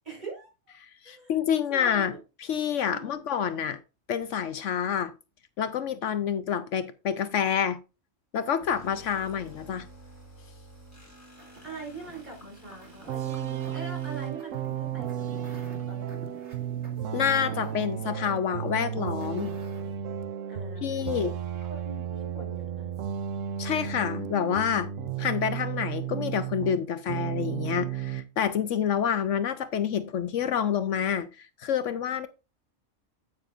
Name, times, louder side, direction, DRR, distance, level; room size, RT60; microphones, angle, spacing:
voice 1, 0.0-0.5 1.0-1.3 1.7-2.2 2.9-3.2 11.6-15.6 15.9-16.3 20.5-21.3 21.7-22.9, right 3 dB, 35° right, 5.0 m, -43 dB
voice 2, 0.8-2.1 2.4-3.8 4.1-5.1 5.6-7.8 8.3-9.9 17.1-19.5 20.8-21.3 23.6-24.9 25.2-32.3, left 8 dB, 75° left, 1.0 m, -28 dB
sound 1, 8.6-14.3, right 1 dB, 10° left, 5.6 m, -50 dB
sound 2, 11.4-20.0, right 2 dB, 60° right, 2.6 m, -49 dB
sound 3, 13.1-26.8 27.1-28.3, right 9 dB, 75° right, 1.1 m, -33 dB
9.5 x 8.7 x 2.5 m
omnidirectional pair, 1.3 m